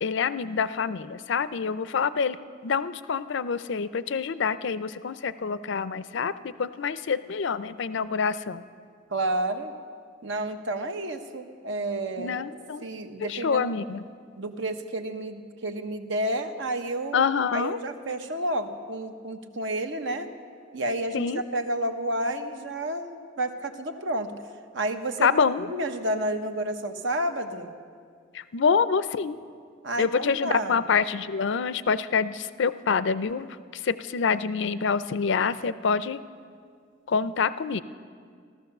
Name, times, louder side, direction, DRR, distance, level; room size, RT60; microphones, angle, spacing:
voice 1, 0.0-8.6 12.2-12.8 13.2-14.0 17.1-17.8 21.1-21.4 25.2-25.7 28.3-29.4 30.0-33.5 33.8-36.2 37.1-37.8, left 5 dB, 65° left, 15 dB, 0.5 m, -26 dB
voice 2, 9.1-9.7 10.2-12.4 12.8-13.8 14.4-17.3 17.5-20.3 20.7-24.3 24.7-25.4 25.7-27.7 29.8-30.8, right 1 dB, 70° right, 7 dB, 1.0 m, -30 dB
15.5 x 13.5 x 6.7 m, 2.1 s
head